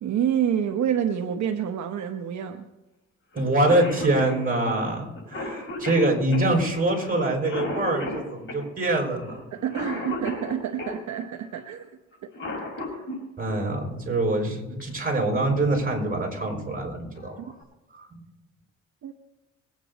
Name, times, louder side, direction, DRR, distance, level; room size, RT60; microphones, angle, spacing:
voice 1, 0.0-2.7 9.5-11.9 19.0-19.1, right 9 dB, 70° right, 5 dB, 1.0 m, -27 dB
voice 2, 3.3-9.4 13.4-17.5 17.9-18.2, right 2 dB, 30° right, 1 dB, 5.5 m, -25 dB
Cough, 3.4-3.5 3.7-11.0 12.1-13.2 14.8-14.9 15.9-16.2 16.7-16.8 17.2-17.6, left 2 dB, 40° left, 5.8 m, -35 dB
22.0 x 9.2 x 4.1 m, 1.1 s
cardioid pair, 90°, 30 cm